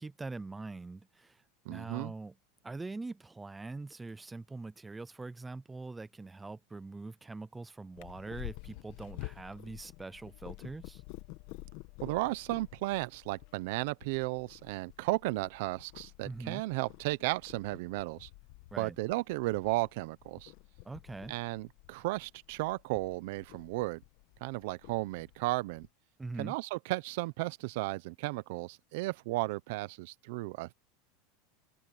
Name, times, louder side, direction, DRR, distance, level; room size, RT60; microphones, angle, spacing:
voice 1, 0.0-1.4 1.7-2.3 2.6-11.0 16.2-16.6 18.7-19.0 20.8-21.4 26.2-26.6, right 3 dB, 5° right, 0.5 m, -43 dB
voice 2, 1.7-2.1 12.0-18.3 18.8-20.5 21.3-24.0 24.4-25.9 26.4-30.7, right 21 dB, 55° right, 0.7 m, -34 dB
Purr, 7.9-25.9, left 19 dB, 45° left, 1.4 m, -50 dB
supercardioid pair, 175°, 0 cm